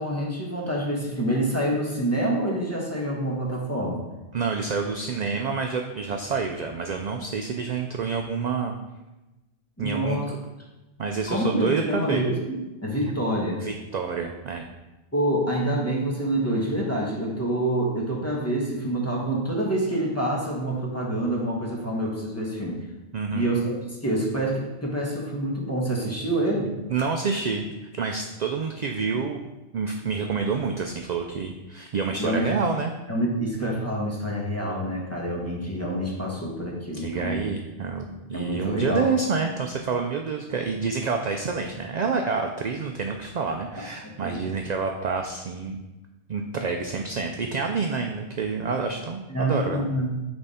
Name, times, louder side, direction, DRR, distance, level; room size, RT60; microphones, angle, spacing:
voice 1, 0.0-4.1 9.8-10.2 11.3-13.6 15.1-22.8 23.3-26.7 32.2-32.4 33.1-37.4 38.3-39.1 44.0-44.6 49.3-50.2, right 1 dB, 15° left, -3 dB, 1.2 m, -27 dB
voice 2, 4.3-8.7 9.8-10.4 11.0-12.2 13.6-14.7 23.1-23.5 26.9-27.6 28.0-29.5 29.7-32.9 37.0-45.8 46.3-49.9, right 5 dB, 55° right, 3 dB, 0.5 m, -28 dB
8.7 x 3.5 x 4.2 m, 1.1 s
omnidirectional pair, 1.1 m